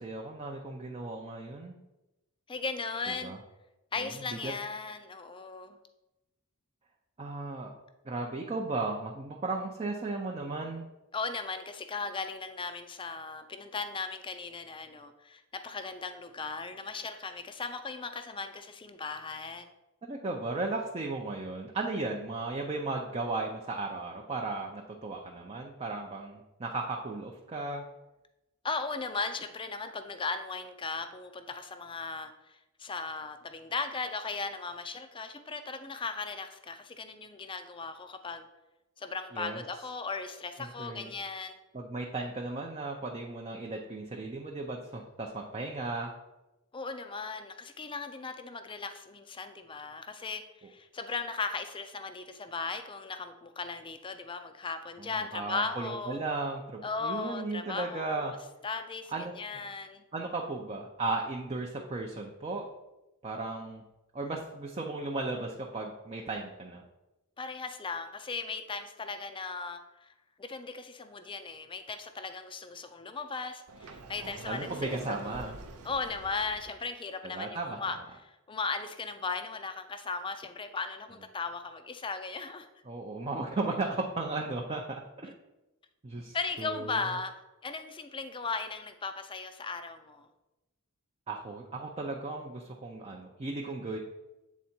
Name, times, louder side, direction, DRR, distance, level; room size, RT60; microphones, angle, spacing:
voice 1, 0.0-1.8 3.2-3.4 4.0-4.1 4.4-4.5 7.2-7.7 8.0-10.9 20.0-27.8 39.3-39.6 40.6-41.1 41.7-46.1 55.0-58.3 59.1-59.3 60.1-62.7 63.2-63.8 64.1-66.8 74.2-75.5 77.2-77.8 82.9-84.8 85.2-85.3 86.0-87.0 91.3-94.0, right 3 dB, 25° right, 1 dB, 0.5 m, -35 dB
voice 2, 2.5-3.3 3.9-5.8 11.1-19.7 28.6-38.4 39.0-41.5 46.7-56.2 56.8-58.4 58.6-60.0 67.4-70.1 70.4-75.5 75.8-78.0 78.2-82.7 86.3-87.3 87.6-90.3 93.9-94.0, left 4 dB, 20° left, 8 dB, 0.5 m, -37 dB
Sliding door, 73.7-76.7, right 3 dB, 85° right, 0.6 m, -46 dB
8.1 x 3.7 x 4.3 m, 1.0 s
head